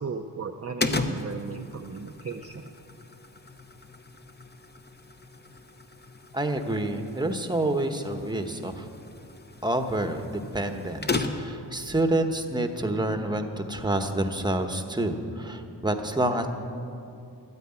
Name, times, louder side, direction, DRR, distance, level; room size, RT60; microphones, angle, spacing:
voice 1, 0.0-2.7, right 5 dB, 35° right, 5 dB, 0.5 m, -36 dB
sound 1, 0.8-11.7, left 3 dB, 25° left, 0.8 m, -36 dB
voice 2, 6.3-8.9 9.6-16.5, right 1 dB, 10° right, 6 dB, 0.9 m, -28 dB
12.5 x 9.4 x 8.7 m, 2.6 s
wide cardioid pair, 115°, 41 cm